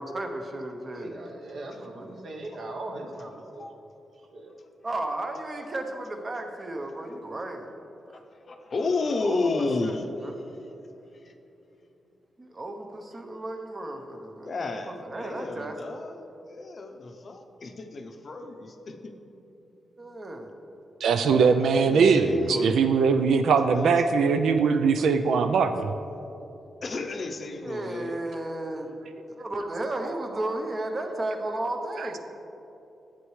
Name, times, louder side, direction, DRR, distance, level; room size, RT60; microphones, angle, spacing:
voice 1, 0.0-1.2 2.0-2.2 4.8-7.7 8.1-8.2 9.2-9.9 10.2-10.3 12.4-14.5 14.9-15.7 20.0-20.5 25.0-25.1 25.6-25.7 27.6-29.0 29.4-32.2, right 1 dB, 25° right, 4 dB, 0.7 m, -34 dB
voice 2, 1.0-3.6 4.3-4.5, right 2 dB, 55° right, 2 dB, 1.0 m, -39 dB
voice 3, 3.4-3.7 8.1-10.7 11.1-11.3 14.4-19.1 21.6-22.7 23.7-24.0 26.8-28.2, left 3 dB, 40° left, 5 dB, 0.6 m, -32 dB
voice 4, 21.0-25.9 32.0-32.1, right 5 dB, 80° right, 7 dB, 0.4 m, -21 dB
11.0 x 8.3 x 3.2 m, 3.0 s
wide cardioid pair, 145°, 0 cm